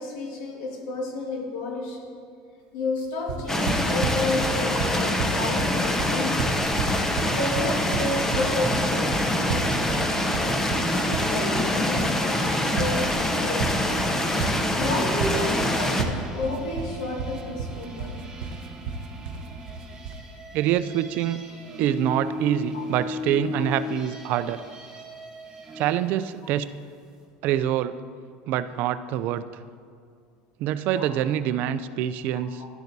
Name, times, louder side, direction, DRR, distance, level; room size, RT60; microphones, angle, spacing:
voice 1, 0.0-2.1 2.7-6.4 7.1-9.8 10.7-14.0 14.8-18.1 22.7-22.9 31.0-31.1 32.3-32.7, left 2 dB, 80° left, 1 dB, 1.8 m, -31 dB
sound 1, 3.3-20.3, right 5 dB, 75° right, 0.8 m, -32 dB
sound 2, 3.5-16.0, left 1 dB, 15° left, 0.8 m, -25 dB
sound 3, 8.8-26.0, equal, 20° right, 2.8 m, -37 dB
voice 2, 20.5-21.4 21.8-24.6 25.8-26.7 27.4-28.0 28.5-29.4 30.6-32.6, right 11 dB, 55° right, 13 dB, 0.4 m, -25 dB
12.0 x 10.5 x 2.7 m, 2.2 s
supercardioid pair, 125°, 4 cm